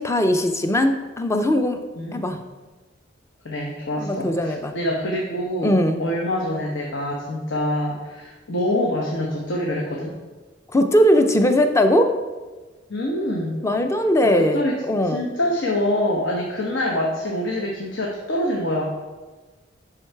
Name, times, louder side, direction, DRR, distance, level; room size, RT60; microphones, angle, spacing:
voice 1, 0.0-1.8 2.1-2.4 4.0-4.7 5.6-6.0 10.7-12.2 13.6-15.2, equal, 15° left, 6 dB, 0.5 m, -19 dB
voice 2, 3.4-5.7 6.0-10.2 12.9-13.6 14.2-14.8 15.1-18.8, left 1 dB, 75° left, -1 dB, 1.0 m, -25 dB
11.0 x 3.9 x 4.6 m, 1.3 s
head